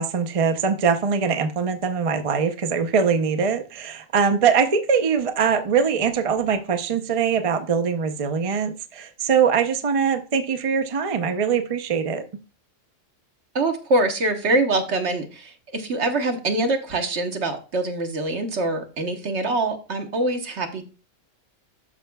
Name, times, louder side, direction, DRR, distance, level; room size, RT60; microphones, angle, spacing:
voice 1, 0.0-12.2, right 6 dB, 40° right, 7 dB, 0.5 m, -22 dB
voice 2, 13.5-20.9, right 2 dB, 60° right, 5 dB, 1.4 m, -24 dB
12.0 x 5.5 x 2.3 m, 0.34 s
omnidirectional pair, 1.3 m